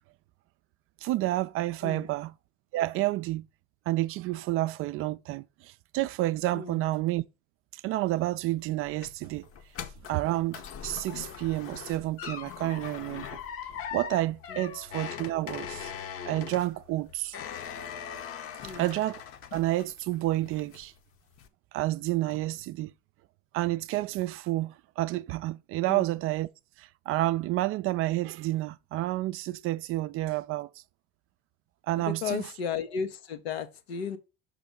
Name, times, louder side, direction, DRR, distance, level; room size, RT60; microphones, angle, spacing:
voice 1, 1.0-2.3 2.7-3.5 3.9-7.2 7.7-9.4 10.1-13.4 13.9-15.9 16.3-17.4 18.6-19.2 19.5-20.9 21.7-22.9 23.5-26.5 26.8-30.7 31.9-32.5, right 16 dB, 45° right, 0.4 m, -30 dB
sound 1, 8.6-20.1 20.5-21.0 21.4-21.5, left 8 dB, 45° left, 0.9 m, -41 dB
voice 2, 32.0-34.2, left 7 dB, 90° left, 0.9 m, -34 dB
6.0 x 3.2 x 5.1 m
hypercardioid pair, 80°, 30 cm